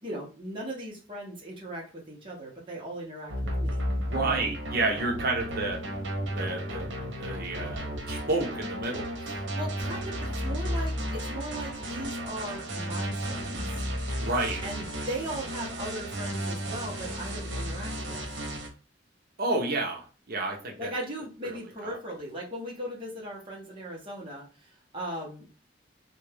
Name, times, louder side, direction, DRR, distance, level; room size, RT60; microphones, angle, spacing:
voice 1, 0.0-3.8 9.2-13.8 14.6-18.2 20.8-25.5, right 1 dB, 30° right, -4 dB, 1.1 m, -38 dB
sound 1, 3.3-18.7, equal, 80° right, 0.9 m, -33 dB
voice 2, 4.0-5.8 6.3-6.9 7.2-9.1 14.2-14.6 19.4-20.9 21.4-21.6 21.8-22.0, right 2 dB, 55° right, 1 dB, 0.8 m, -30 dB
3.4 x 2.5 x 3.4 m, 0.34 s
head